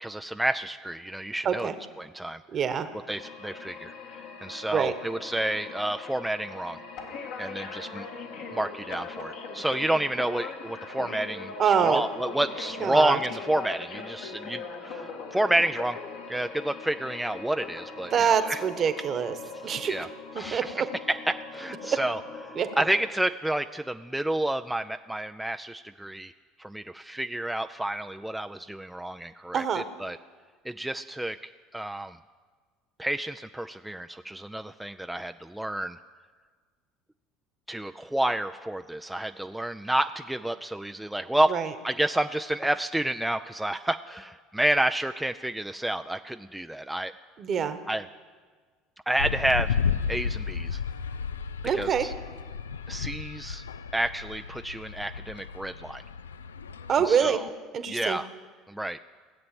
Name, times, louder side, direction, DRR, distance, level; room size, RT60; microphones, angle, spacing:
voice 1, 0.0-1.7 2.0-2.4 2.9-6.8 7.4-8.1 8.5-16.0 16.3-18.6 19.6-20.1 20.4-26.3 26.6-30.2 30.6-31.4 31.7-32.2 33.0-36.0 37.7-41.5 41.8-47.1 47.9-48.1 49.1-50.8 51.7-52.1 52.9-53.6 53.9-56.0 57.1-57.5 57.9-58.3 58.7-59.0, right 1 dB, 5° right, 8 dB, 0.4 m, -30 dB
voice 2, 2.5-2.9 4.7-4.9 11.6-12.0 12.8-13.2 18.1-19.3 19.6-20.0 20.3-20.9 21.8-22.0 22.6-22.7 29.5-29.8 41.5-41.7 47.4-47.8 51.6-52.1 56.9-57.4 57.7-58.2, right 7 dB, 45° right, 10 dB, 1.2 m, -25 dB
sound 1, 3.2-23.1, left 4 dB, 70° left, 1.9 m, -40 dB
sound 2, 49.2-57.2, left 6 dB, 85° left, 0.4 m, -33 dB
16.5 x 8.0 x 7.7 m, 1.5 s
hypercardioid pair, 70°, 0 cm